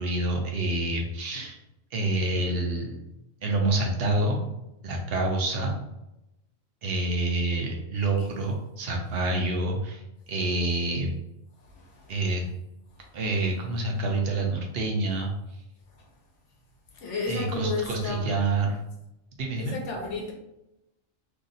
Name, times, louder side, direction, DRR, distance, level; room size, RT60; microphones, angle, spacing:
voice 1, 0.0-1.6 1.9-3.0 3.4-4.4 4.8-5.7 6.8-10.0 10.3-11.1 12.1-12.4 13.1-15.3 17.3-18.8 19.4-19.8, right 2 dB, 60° right, 1 dB, 0.7 m, -27 dB
voice 2, 11.6-12.2 13.0-13.1 15.9-16.1 16.9-18.3 19.6-20.3, left 3 dB, 65° left, 1 dB, 1.0 m, -33 dB
2.7 x 2.5 x 3.9 m, 0.88 s
omnidirectional pair, 1.4 m